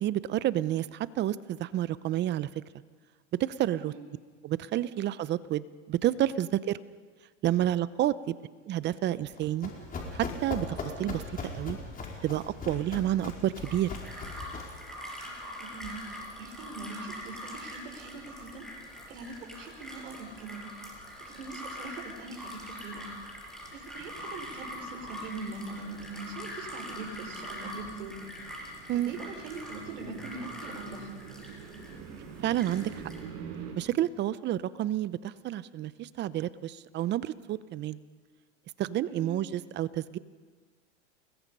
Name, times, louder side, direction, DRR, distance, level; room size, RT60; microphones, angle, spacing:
voice 1, 0.0-2.5 3.6-3.9 4.4-6.8 7.4-8.3 8.7-9.7 10.1-11.2 11.5-11.8 12.2-13.9 28.9-29.1 32.4-33.1 33.8-38.0 38.8-40.2, right 12 dB, 30° right, 17 dB, 0.7 m, -30 dB
voice 2, 3.7-4.1 15.6-16.0 16.3-18.6 19.1-20.6 21.3-23.1 23.7-28.1 28.9-31.1 39.1-39.4, right 3 dB, 75° right, 2 dB, 5.0 m, -42 dB
Run, 9.2-14.8, left 4 dB, 25° left, 4.8 m, -39 dB
sound 1, 13.6-33.2, equal, ahead, 6.0 m, -43 dB
sound 2, 24.0-33.7, right 7 dB, 50° right, 6.7 m, -47 dB
29.5 x 21.0 x 5.4 m, 1.5 s
supercardioid pair, 125°, 37 cm